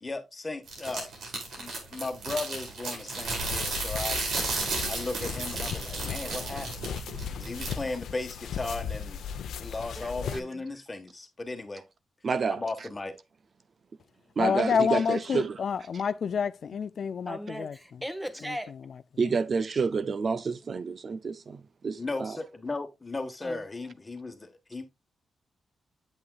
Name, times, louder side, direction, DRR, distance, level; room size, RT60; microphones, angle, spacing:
voice 1, 0.0-1.1 1.6-4.2 4.9-6.7 7.4-9.2 9.6-11.8 12.5-13.1 22.0-24.8, left 3 dB, 20° left, 1.4 m, -36 dB
sound 1, 0.7-7.7, right 3 dB, 80° right, 4.2 m, -33 dB
sound 2, 3.4-10.4, left 7 dB, 90° left, 0.7 m, -37 dB
voice 2, 10.0-10.8 17.2-18.7 23.4-23.6, equal, 5° right, 1.2 m, -38 dB
voice 3, 12.2-12.9 14.4-15.6 19.2-22.4, right 5 dB, 45° right, 0.5 m, -29 dB
voice 4, 14.4-17.8 18.5-18.6, left 6 dB, 55° left, 0.3 m, -28 dB
8.6 x 7.9 x 2.4 m
cardioid pair, 120°, 0 cm